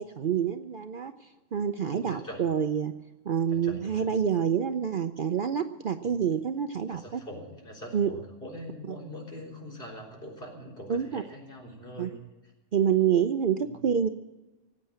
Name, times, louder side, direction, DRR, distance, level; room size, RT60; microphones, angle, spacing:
voice 1, 0.0-2.9 3.3-7.2 7.9-8.1 8.9-9.0 10.9-11.2 12.0-12.1 12.7-14.1, right 8 dB, 50° right, 8 dB, 0.7 m, -27 dB
voice 2, 1.8-2.4 3.5-4.1 6.9-12.2 13.6-13.7, equal, 45° left, -1 dB, 4.2 m, -43 dB
18.5 x 8.9 x 8.7 m, 1.1 s
omnidirectional pair, 1.3 m